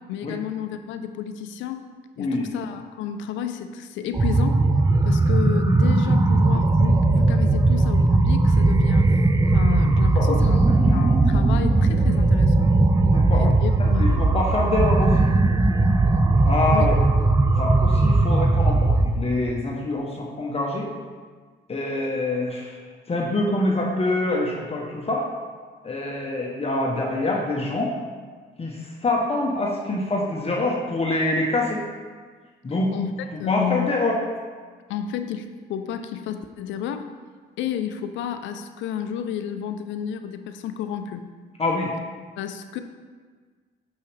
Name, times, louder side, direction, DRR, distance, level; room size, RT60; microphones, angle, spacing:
voice 1, 0.0-1.9 2.2-4.7 5.0-9.2 9.5-12.7 13.3-14.2 16.7-16.9 32.9-33.9 34.9-37.1 37.6-41.3 42.4-42.8, left 9 dB, 80° left, 9 dB, 0.5 m, -31 dB
sound 1, 4.1-19.1, right 2 dB, 20° right, 0.5 m, -18 dB
voice 2, 13.1-13.5 13.8-15.3 16.4-17.0 17.6-20.9 21.7-22.8 23.1-25.3 25.8-27.9 28.6-31.8 32.6-32.9 33.5-34.2 41.6-41.9, left 2 dB, 30° left, -2 dB, 1.0 m, -25 dB
6.3 x 5.5 x 3.3 m, 1.5 s
supercardioid pair, 70°, 19 cm